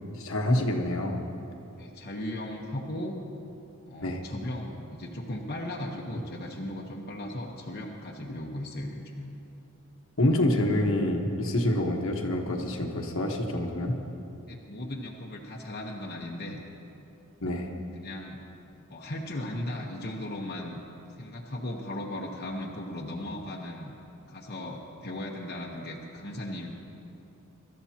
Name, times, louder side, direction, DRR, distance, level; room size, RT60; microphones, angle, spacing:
voice 1, 0.1-1.2 4.0-4.2 10.2-14.0 17.4-17.7, left 1 dB, 65° left, 2 dB, 1.3 m, -27 dB
voice 2, 1.8-3.2 3.9-9.4 14.5-16.6 18.0-18.4 18.9-20.8 21.2-23.9 24.3-26.7, left 1 dB, 45° left, -2 dB, 1.1 m, -37 dB
24.0 x 13.0 x 2.9 m, 2.9 s
head